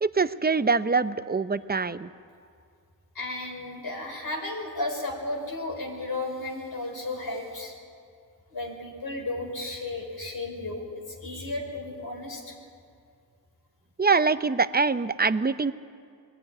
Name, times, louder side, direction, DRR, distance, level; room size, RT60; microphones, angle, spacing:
voice 1, 0.0-2.1 14.0-15.7, right 4 dB, 25° right, 13 dB, 0.7 m, -24 dB
voice 2, 3.1-7.7 8.5-12.5, left 2 dB, 65° left, 0 dB, 4.9 m, -34 dB
21.0 x 15.5 x 9.6 m, 2.3 s
wide cardioid pair, 70°, 38 cm